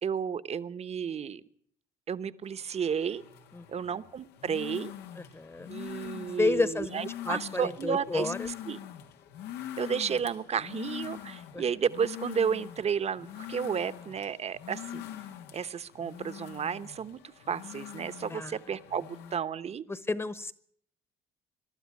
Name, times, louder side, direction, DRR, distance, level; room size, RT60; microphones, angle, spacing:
voice 1, 0.0-1.4 2.1-3.2 3.7-4.9 5.7-8.3 8.7-8.8 9.8-15.0 15.5-17.2 17.5-19.8, right 7 dB, 40° right, 13 dB, 1.0 m, -32 dB
sound 1, 2.5-19.4, left 11 dB, 80° left, 1.5 m, -44 dB
voice 2, 5.2-5.7 6.4-8.5 11.5-11.6 18.3-18.6 19.9-20.5, left 3 dB, 15° left, 16 dB, 1.1 m, -31 dB
23.0 x 12.5 x 9.5 m, 0.64 s
cardioid pair, 110°, 17 cm